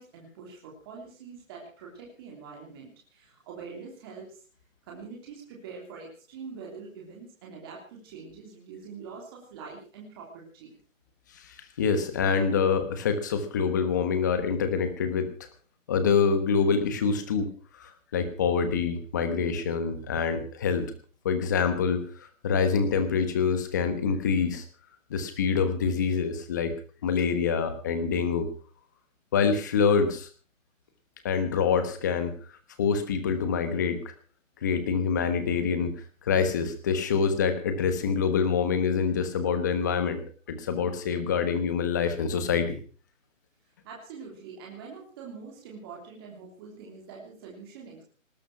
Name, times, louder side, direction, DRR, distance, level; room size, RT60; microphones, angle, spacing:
voice 1, 0.0-4.4 4.8-10.7 43.8-48.0, right 5 dB, 20° right, -2 dB, 3.1 m, -44 dB
voice 2, 11.3-15.3 15.9-17.5 17.8-20.9 21.2-22.0 22.4-24.6 25.1-26.7 27.0-28.5 29.3-30.3 31.2-32.4 32.8-34.0 34.6-35.9 36.2-40.2 40.5-42.8, left 6 dB, 15° left, 10 dB, 1.2 m, -26 dB
19.5 x 11.5 x 6.0 m, 0.40 s
hypercardioid pair, 170°, 40 cm